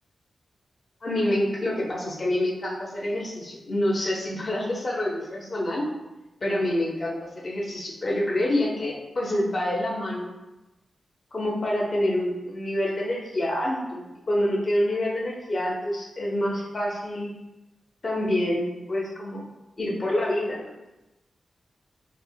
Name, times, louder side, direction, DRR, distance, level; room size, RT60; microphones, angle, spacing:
voice 1, 1.0-5.9 6.4-10.3 11.3-17.3 18.0-19.5 19.8-20.7, left 1 dB, 40° left, -4 dB, 0.6 m, -27 dB
5.5 x 2.0 x 2.2 m, 1.0 s
wide cardioid pair, 115°, 0 cm